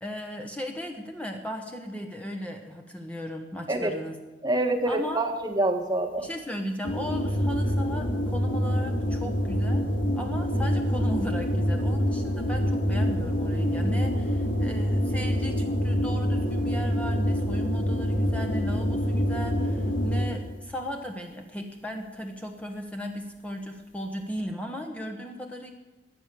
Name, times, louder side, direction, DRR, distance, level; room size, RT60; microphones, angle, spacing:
voice 1, 0.0-4.2 4.9-5.2 6.2-25.7, equal, 5° left, 3 dB, 1.1 m, -36 dB
voice 2, 4.4-6.3, right 2 dB, 20° right, 4 dB, 1.3 m, -26 dB
sound 1, 6.8-20.5, equal, 85° left, 3.0 m, -26 dB
20.0 x 8.9 x 6.9 m, 1.1 s
head